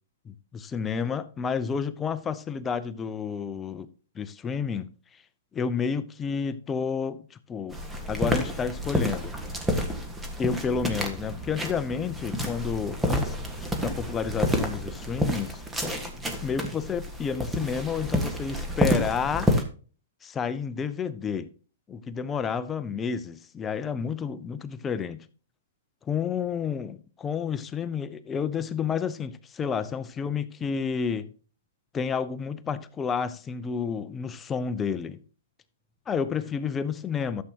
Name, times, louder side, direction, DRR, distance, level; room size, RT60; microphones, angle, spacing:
voice 1, 0.2-3.9 4.1-4.9 5.5-7.8 8.1-9.3 10.4-13.4 13.8-15.6 16.4-19.5 20.2-21.5 21.9-25.2 26.1-31.3 31.9-35.2 36.1-37.4, left 6 dB, 20° left, 0.7 m, -30 dB
sound 1, 7.7-19.6, equal, 5° right, 1.6 m, -29 dB
13.0 x 7.6 x 2.9 m
hypercardioid pair, 130°, 0 cm